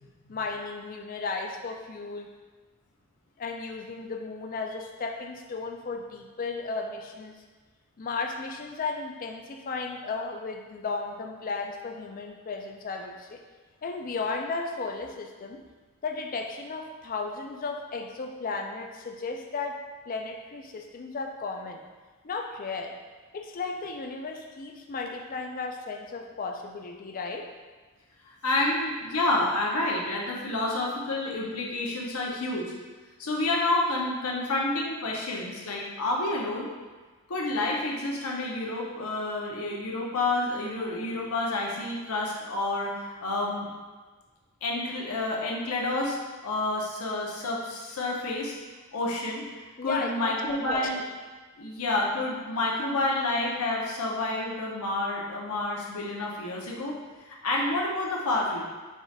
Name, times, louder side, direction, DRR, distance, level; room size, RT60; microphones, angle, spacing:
voice 1, 0.3-2.3 3.4-7.3 8.0-13.4 13.8-15.6 16.0-19.8 20.1-21.8 22.2-23.0 23.3-27.5 49.8-51.0, left 4 dB, 40° left, 3 dB, 0.4 m, -34 dB
voice 2, 28.2-32.7 33.2-36.7 37.3-43.7 44.6-46.2 46.4-48.5 48.9-49.4 49.8-51.0 51.6-58.7, left 2 dB, 75° left, -2 dB, 0.9 m, -29 dB
4.8 x 2.5 x 4.1 m, 1.4 s
head